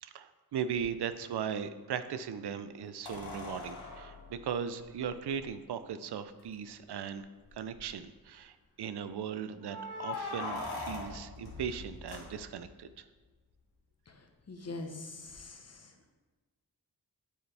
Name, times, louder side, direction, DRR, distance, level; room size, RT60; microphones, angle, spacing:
voice 1, 0.0-7.3 7.5-13.0, right 7 dB, 85° right, 11 dB, 0.6 m, -38 dB
sound 1, 0.7-0.8 3.0-5.4 6.4-6.5 6.8-6.9 7.4-7.9 9.6-12.8 15.3-15.4, left 3 dB, 85° left, 1.8 m, -42 dB
voice 2, 14.1-15.9, left 2 dB, 40° left, 4 dB, 1.1 m, -44 dB
8.4 x 8.0 x 3.4 m, 1.3 s
wide cardioid pair, 95°, 39 cm